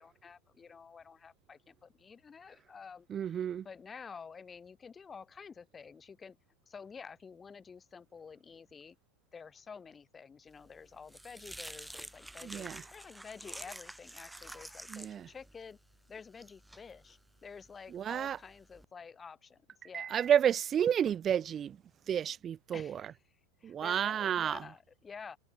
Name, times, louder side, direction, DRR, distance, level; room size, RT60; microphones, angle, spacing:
voice 1, 0.0-3.3 3.6-6.4 6.7-9.0 9.3-15.8 16.1-20.3 22.7-25.4, left 5 dB, 20° left, 2.2 m, -50 dB
voice 2, 3.1-3.7 12.4-12.8 14.9-15.3 17.9-18.4 19.9-21.8 22.1-23.0 23.6-24.6, right 9 dB, 30° right, 0.4 m, -31 dB
sound 1, 10.6-18.8, right 1 dB, 5° right, 0.8 m, -49 dB
hypercardioid pair, 95°, 0 cm